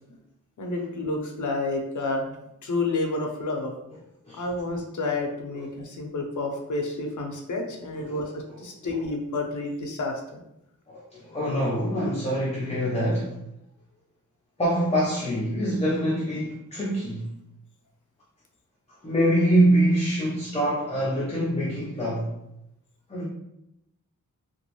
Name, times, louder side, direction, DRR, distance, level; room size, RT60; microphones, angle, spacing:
voice 1, 0.6-2.4 2.6-3.7 4.3-10.4, left 2 dB, 65° left, 2 dB, 0.6 m, -30 dB
voice 2, 8.1-9.0 10.9-13.3 14.6-17.3 19.0-22.3 23.1-23.3, right 1 dB, 20° left, -6 dB, 0.6 m, -25 dB
3.0 x 2.5 x 2.9 m, 0.82 s
wide cardioid pair, 120°, 33 cm